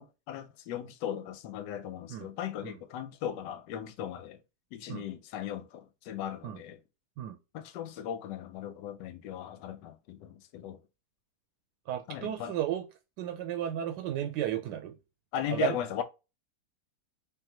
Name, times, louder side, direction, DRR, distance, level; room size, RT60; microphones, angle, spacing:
voice 1, 0.0-4.4 4.7-6.8 7.5-10.8 12.1-12.5 15.3-16.0, left 10 dB, 80° left, 1.2 m, -37 dB
voice 2, 11.9-12.8 13.2-14.9 15.5-15.8, right 11 dB, 80° right, 1.2 m, -33 dB
3.6 x 3.5 x 2.8 m
omnidirectional pair, 1.9 m